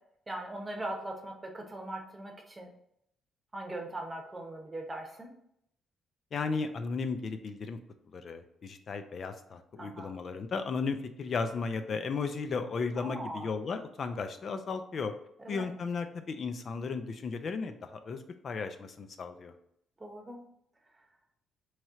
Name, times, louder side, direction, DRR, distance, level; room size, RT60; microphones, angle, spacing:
voice 1, 0.3-2.7 3.5-5.3 9.8-10.1 13.0-13.5 15.4-15.7 20.0-20.4, right 1 dB, 20° right, 2 dB, 0.9 m, -40 dB
voice 2, 6.3-7.8 8.1-15.1 15.5-19.5, left 4 dB, 50° left, 8 dB, 0.5 m, -35 dB
3.1 x 2.9 x 3.6 m, 0.72 s
cardioid pair, 90°, 0 cm